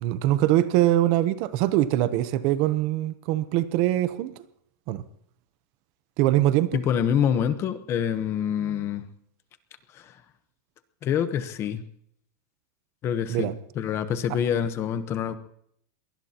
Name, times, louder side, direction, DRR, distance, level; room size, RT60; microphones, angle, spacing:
voice 1, 0.0-4.3 4.9-5.0 6.2-6.8 13.3-13.5, right 14 dB, 40° right, 0.7 m, -23 dB
voice 2, 6.7-9.1 9.9-10.2 11.0-11.8 13.0-13.5 13.8-15.4, left 8 dB, 25° left, 0.9 m, -26 dB
22.0 x 19.5 x 2.9 m
supercardioid pair, 170°, 10 cm